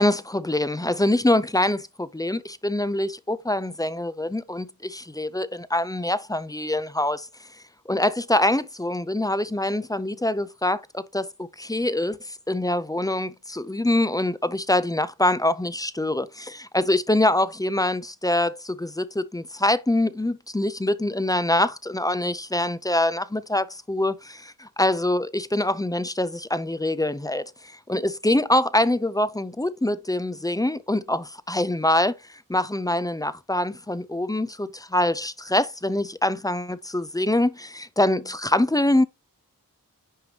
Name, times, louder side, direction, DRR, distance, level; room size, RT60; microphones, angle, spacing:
voice 1, 0.0-7.3 7.9-39.0, left 1 dB, 10° left, 0.5 m, -24 dB
10.0 x 3.3 x 2.8 m
cardioid pair, 50°, 35 cm